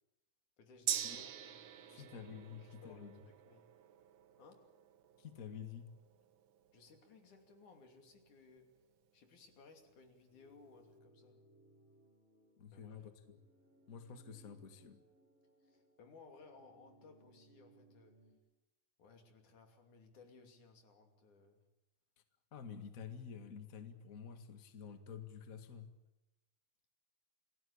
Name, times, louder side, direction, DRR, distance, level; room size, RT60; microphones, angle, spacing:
voice 1, 0.6-3.7 4.4-4.7 6.7-8.7 9.1-11.4 12.7-13.1 15.6-18.2 19.0-21.6, left 4 dB, 80° left, 5 dB, 4.3 m, -61 dB
Gong, 0.9-8.6 9.0-9.1, right 9 dB, 60° right, 1.3 m, -46 dB
voice 2, 1.9-3.2 5.2-5.9 12.6-13.4 13.9-15.0 22.5-25.9, left 7 dB, 30° left, 8 dB, 1.9 m, -50 dB
sound 1, 10.3-18.3, right 1 dB, 80° right, 7.6 m, -68 dB
27.5 x 18.0 x 8.7 m, 0.95 s
omnidirectional pair, 3.5 m